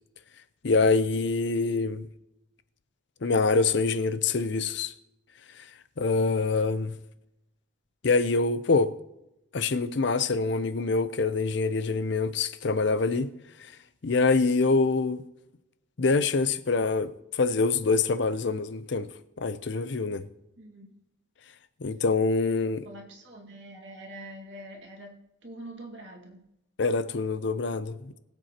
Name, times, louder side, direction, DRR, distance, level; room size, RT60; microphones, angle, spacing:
voice 1, 0.6-2.1 3.2-4.9 5.6-5.7 6.0-6.9 8.0-8.9 9.5-13.3 13.6-13.7 14.0-15.2 16.0-19.1 19.4-20.2 21.8-22.9 26.8-28.2, left 3 dB, 55° left, 0.6 m, -25 dB
voice 2, 20.6-20.9 22.8-25.2 25.4-26.5, right 1 dB, 60° right, 1.9 m, -44 dB
21.5 x 7.8 x 2.9 m
head